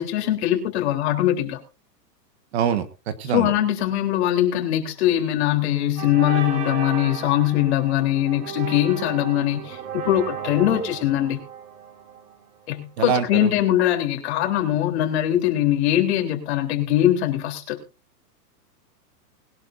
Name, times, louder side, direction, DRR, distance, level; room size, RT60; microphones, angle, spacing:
voice 1, 0.0-1.6 3.3-11.4 12.7-17.8, left 12 dB, 40° left, 3 dB, 3.7 m, -22 dB
voice 2, 2.5-3.5 13.0-13.5, right 8 dB, 40° right, 10 dB, 1.5 m, -24 dB
sound 1, 5.2-5.5 6.0-12.8, right 7 dB, 60° right, 3.5 m, -35 dB
21.5 x 11.5 x 2.7 m, 0.31 s
supercardioid pair, 170°, 49 cm